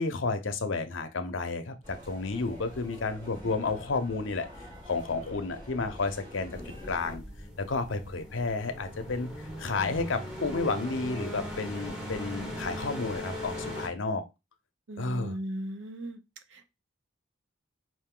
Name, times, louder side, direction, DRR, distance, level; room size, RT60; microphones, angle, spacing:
voice 1, 0.0-4.5 4.9-6.6 6.9-7.2 7.6-9.3 9.6-14.2 15.0-15.3, left 3 dB, 75° left, 8 dB, 0.7 m, -31 dB
sound 1, 1.8-7.2, left 1 dB, 35° right, 3.0 m, -46 dB
sound 2, 6.5-13.9, equal, 5° right, 1.1 m, -39 dB
voice 2, 14.9-16.2 16.5-16.7, equal, 75° right, 8 dB, 0.7 m, -37 dB
4.5 x 2.6 x 3.7 m, 0.24 s
head